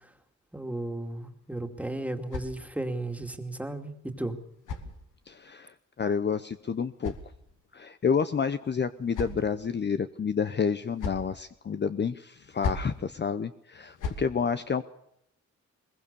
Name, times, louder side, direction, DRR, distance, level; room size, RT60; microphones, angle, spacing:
voice 1, 0.5-4.4, right 1 dB, 5° right, 6 dB, 2.5 m, -34 dB
sound 1, 1.4-3.1 4.1-5.5 6.5-7.8 8.6-9.7 10.6-11.4 12.4-13.0 13.7-14.3, left 4 dB, 85° left, 2.7 m, -39 dB
voice 2, 5.3-7.1 7.7-14.8, left 6 dB, 35° left, 11 dB, 0.8 m, -29 dB
21.5 x 21.0 x 6.9 m, 0.75 s
cardioid pair, 90°, 30 cm